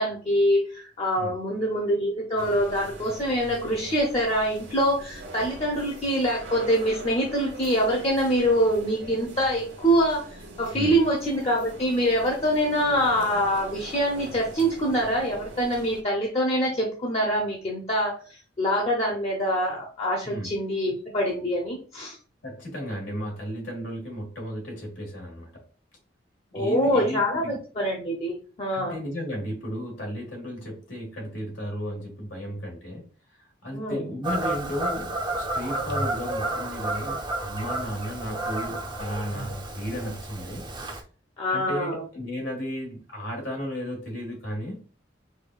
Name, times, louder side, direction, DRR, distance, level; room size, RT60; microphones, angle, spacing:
voice 1, 0.0-10.3 10.6-18.2 18.6-22.2 26.5-28.9 33.7-34.1 41.4-42.0, equal, 35° left, -1 dB, 0.7 m, -25 dB
sound 1, 2.4-16.0, right 2 dB, 80° right, 0.9 m, -42 dB
voice 2, 22.4-25.6 26.5-27.6 28.7-40.6 41.5-44.8, equal, 80° left, 0 dB, 1.6 m, -34 dB
Fowl / Bird vocalization bird call bird song, 34.2-41.0, right 2 dB, 25° right, 0.5 m, -31 dB
4.8 x 2.4 x 2.3 m, 0.38 s
head